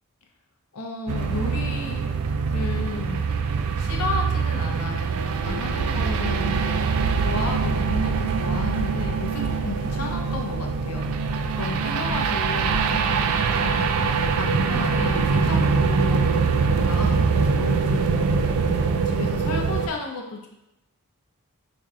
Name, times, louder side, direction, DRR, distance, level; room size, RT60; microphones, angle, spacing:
voice 1, 0.7-2.0 2.5-3.2 3.8-16.5 16.9-20.5, left 3 dB, 85° left, 1 dB, 0.6 m, -33 dB
sound 1, 1.1-19.9, right 5 dB, 70° right, 0.3 m, -23 dB
5.4 x 2.6 x 2.4 m, 0.88 s
head